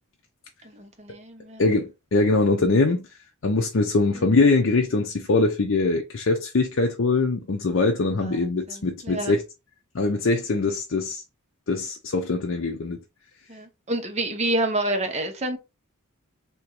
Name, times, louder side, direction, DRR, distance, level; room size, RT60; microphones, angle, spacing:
voice 1, 0.6-1.6 4.1-4.2 8.2-8.4 8.7-9.4 13.5-15.6, right 1 dB, 30° right, 0.7 m, -28 dB
voice 2, 1.6-3.0 3.4-9.4 9.9-11.2 11.7-13.0, left 3 dB, 60° left, 0.5 m, -22 dB
3.6 x 2.9 x 2.9 m
head